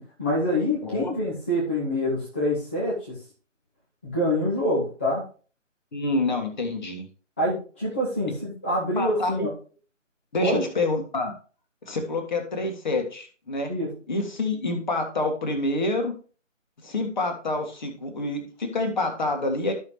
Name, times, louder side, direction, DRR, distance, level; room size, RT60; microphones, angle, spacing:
voice 1, 0.0-3.1 4.0-5.2 7.4-9.5 10.4-10.6 13.7-13.9, left 1 dB, 10° left, -6 dB, 0.8 m, -26 dB
voice 2, 0.8-1.1 5.9-7.0 9.0-9.5 10.3-11.3 11.8-13.7 14.1-16.1 16.8-19.7, left 2 dB, 35° left, 5 dB, 1.8 m, -27 dB
13.5 x 5.7 x 3.2 m, 0.38 s
figure-of-eight pair, 150°, 39 cm